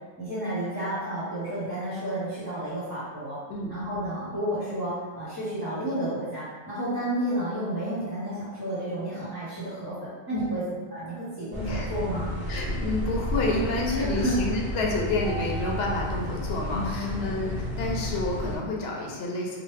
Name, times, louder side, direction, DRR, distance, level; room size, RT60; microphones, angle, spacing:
voice 1, 0.2-3.4 3.7-10.6 10.9-12.3 13.9-14.4 16.7-17.2, right 1 dB, 20° left, -11 dB, 0.7 m, -31 dB
voice 2, 10.3-10.6 11.7-11.9 12.5-19.6, left 2 dB, 70° left, -1 dB, 0.8 m, -29 dB
sound 1, 11.5-18.6, left 1 dB, 60° right, 1.0 m, -31 dB
3.0 x 2.1 x 3.2 m, 1.4 s
omnidirectional pair, 1.2 m